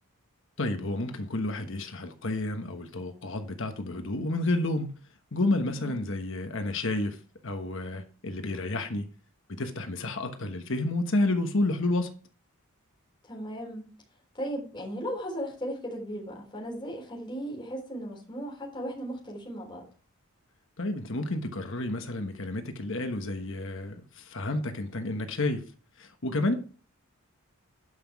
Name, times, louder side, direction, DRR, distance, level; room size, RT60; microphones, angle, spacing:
voice 1, 0.6-4.9 5.3-9.1 9.6-12.1 20.8-25.6 26.0-26.5, left 2 dB, 55° left, 1.3 m, -30 dB
voice 2, 13.2-13.9 14.3-19.8, equal, 20° left, 3.9 m, -36 dB
11.0 x 6.0 x 4.8 m
head